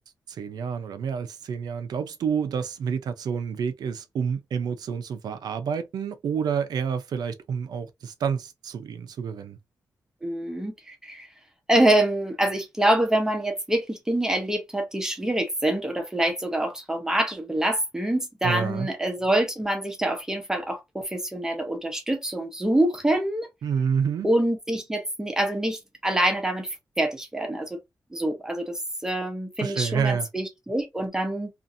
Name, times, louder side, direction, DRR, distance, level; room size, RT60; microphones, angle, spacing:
voice 1, 0.3-9.6 18.4-18.9 23.6-24.3 29.6-30.3, right 6 dB, 85° right, 0.5 m, -28 dB
voice 2, 10.2-11.3 11.7-23.5 24.2-26.7 27.0-27.8 28.1-31.5, right 1 dB, 10° right, 0.7 m, -25 dB
2.6 x 2.5 x 2.5 m
wide cardioid pair, 165°, 7 cm